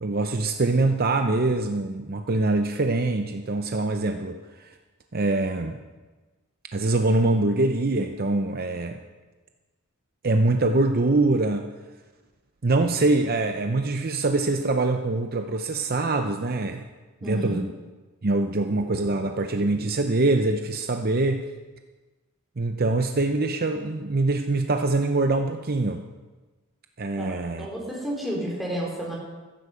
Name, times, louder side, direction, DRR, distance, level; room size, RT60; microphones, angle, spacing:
voice 1, 0.0-4.7 5.1-5.8 6.7-9.0 10.2-11.7 12.6-16.8 17.2-17.7 18.2-21.5 22.6-26.0 27.0-27.7, right 2 dB, 45° right, 6 dB, 0.7 m, -24 dB
voice 2, 17.2-17.6 27.2-29.1, right 1 dB, ahead, -4 dB, 4.1 m, -31 dB
15.0 x 14.5 x 5.1 m, 1.3 s
head